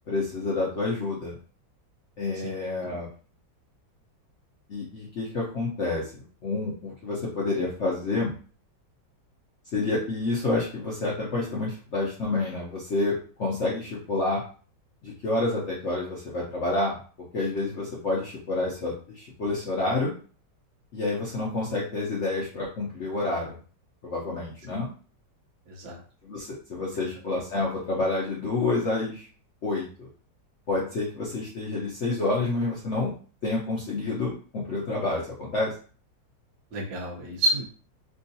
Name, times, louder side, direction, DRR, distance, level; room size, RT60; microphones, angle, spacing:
voice 1, 0.1-1.4 2.2-3.1 4.7-8.3 9.7-14.4 15.0-16.9 17.3-20.1 20.9-23.6 24.0-24.9 26.2-29.3 29.6-30.1 30.7-33.1 33.4-35.7, left 2 dB, 60° left, -4 dB, 0.8 m, -28 dB
voice 2, 25.7-26.0 36.7-37.6, right 1 dB, 60° right, -1 dB, 1.2 m, -29 dB
3.6 x 2.3 x 2.6 m, 0.40 s
omnidirectional pair, 2.0 m